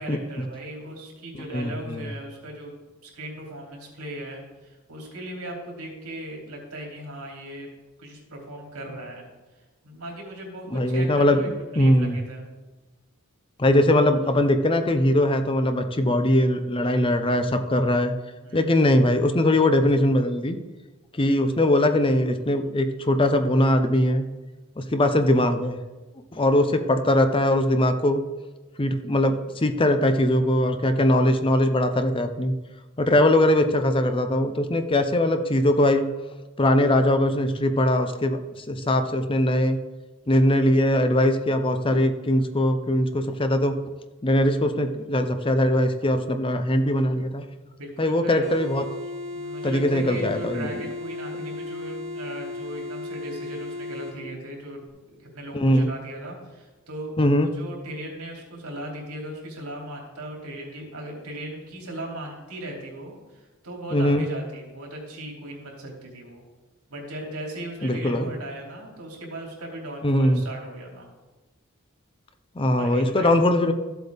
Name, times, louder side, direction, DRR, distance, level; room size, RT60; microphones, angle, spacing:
voice 1, 0.0-2.7 3.0-7.7 8.0-9.3 9.8-12.4 18.4-18.7 47.6-48.5 49.3-66.4 66.9-71.1 72.8-73.3, right 1 dB, 80° right, -1 dB, 3.0 m, -38 dB
voice 2, 1.5-2.1 10.7-11.4 11.8-12.2 13.6-18.1 18.5-20.6 21.2-24.3 24.8-25.8 26.3-28.2 28.8-32.5 33.0-36.1 36.6-39.8 40.3-43.7 44.2-47.4 48.0-48.8 49.6-50.7 55.5-55.9 57.2-57.5 63.9-64.3 67.8-68.3 70.0-70.4 72.6-73.7, left 1 dB, 25° left, 8 dB, 0.6 m, -21 dB
sound 1, 48.4-54.2, left 2 dB, 60° right, 3.4 m, -35 dB
14.0 x 7.9 x 3.5 m, 1.2 s
head